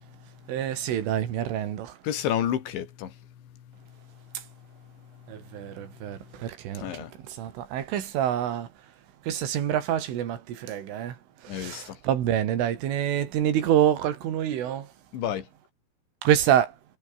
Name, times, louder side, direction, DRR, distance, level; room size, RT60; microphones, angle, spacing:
voice 1, 0.5-2.0 4.4-4.5 5.3-9.0 9.2-14.9 16.2-16.8, right 10 dB, 85° right, 5.2 m, -27 dB
voice 2, 2.0-4.0 5.2-6.0 6.7-7.1 11.5-12.0 15.1-15.5, left 10 dB, 70° left, 5.1 m, -32 dB
omnidirectional pair, 5.6 m